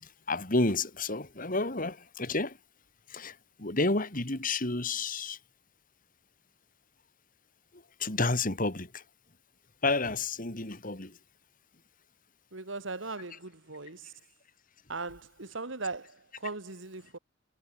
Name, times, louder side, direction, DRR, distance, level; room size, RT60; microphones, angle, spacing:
voice 1, 0.0-2.6 3.1-5.4 7.7-9.0 9.8-11.2, left 3 dB, 45° left, 3.3 m, -31 dB
voice 2, 12.5-14.1 14.9-17.2, right 3 dB, 85° right, 2.5 m, -39 dB
head